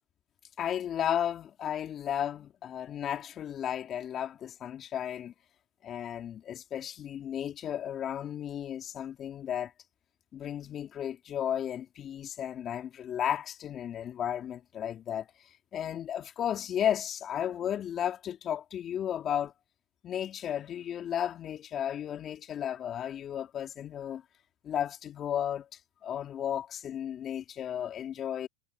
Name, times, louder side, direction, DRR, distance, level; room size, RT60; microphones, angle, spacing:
voice 1, 0.6-5.3 5.8-9.7 10.3-19.5 20.0-24.2 24.6-28.5, left 10 dB, 30° left, 3.0 m, -34 dB
hypercardioid pair, 115°, 0 cm